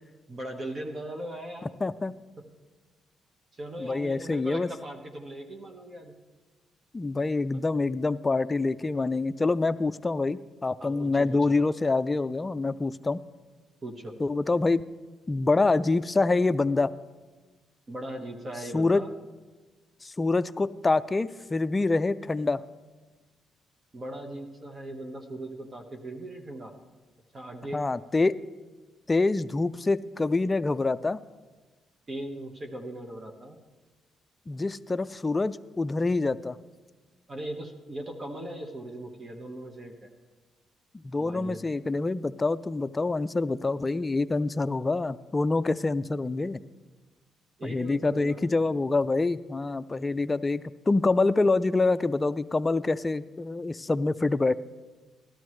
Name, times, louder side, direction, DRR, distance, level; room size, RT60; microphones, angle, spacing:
voice 1, 0.3-1.7 2.4-2.5 3.5-6.2 10.8-11.6 13.8-14.2 17.9-19.1 23.9-26.7 27.3-27.8 32.1-33.6 37.3-40.1 41.2-41.6 47.6-48.5, right 1 dB, 35° right, 3 dB, 1.2 m, -39 dB
voice 2, 1.8-2.1 3.8-4.7 6.9-13.2 14.2-14.8 15.3-16.9 18.7-19.0 20.0-22.6 27.7-28.3 29.1-31.2 34.5-36.6 41.0-46.6 47.6-54.5, left 3 dB, 25° left, 13 dB, 0.4 m, -26 dB
16.5 x 12.0 x 3.2 m, 1.3 s
cardioid pair, 90°, 0 cm